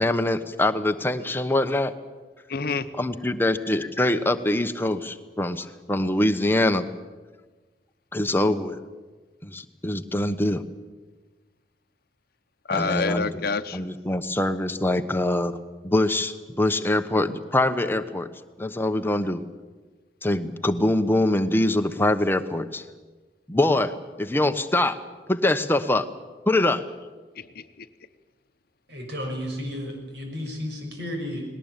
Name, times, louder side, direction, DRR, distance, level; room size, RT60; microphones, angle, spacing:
voice 1, 0.0-1.9 3.0-6.9 8.1-8.8 9.4-10.6 12.7-13.3 13.7-15.6 15.8-18.3 18.6-19.4 20.2-22.8 23.5-25.0 25.3-26.1 26.5-26.8, left 1 dB, 15° left, 1.0 m, -24 dB
voice 2, 2.5-3.0 12.7-13.9 27.3-27.9, left 4 dB, 60° left, 0.9 m, -28 dB
voice 3, 28.9-31.4, equal, 70° right, 6.2 m, -33 dB
19.5 x 18.5 x 9.0 m
head